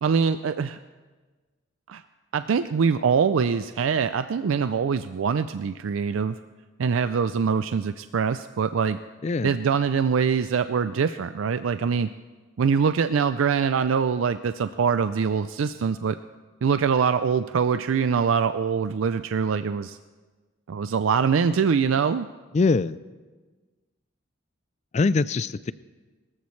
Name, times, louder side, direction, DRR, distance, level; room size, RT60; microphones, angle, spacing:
voice 1, 0.0-0.8 1.9-2.0 2.3-6.4 6.8-9.0 9.4-12.1 12.6-16.2 16.6-20.0 20.7-22.3, right 6 dB, 85° right, 11 dB, 0.4 m, -23 dB
voice 2, 9.2-9.6 22.5-23.0 24.9-25.7, left 3 dB, 35° left, 17 dB, 0.3 m, -23 dB
22.5 x 14.0 x 3.2 m, 1.3 s
head